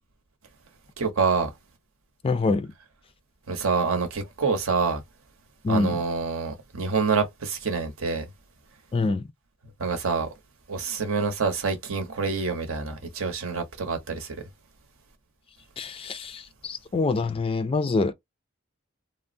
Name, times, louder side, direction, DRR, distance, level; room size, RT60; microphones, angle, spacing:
voice 1, 1.0-1.5 3.5-5.0 5.7-8.2 9.8-10.3 10.7-14.4, right 4 dB, 80° right, 0.8 m, -26 dB
voice 2, 2.2-2.7 5.6-6.0 8.9-9.3 15.8-18.1, left 3 dB, 25° left, 0.3 m, -25 dB
3.3 x 2.0 x 2.5 m
head